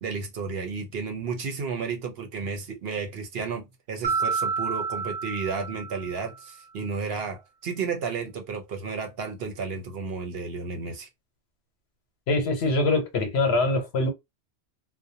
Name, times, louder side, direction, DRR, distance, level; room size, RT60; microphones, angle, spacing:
voice 1, 0.0-11.1, right 5 dB, 65° right, 0.8 m, -32 dB
Mallet percussion, 4.0-6.4, right 5 dB, 25° right, 0.8 m, -29 dB
voice 2, 12.3-14.1, left 2 dB, 65° left, 1.0 m, -23 dB
2.5 x 2.1 x 2.7 m
omnidirectional pair, 1.2 m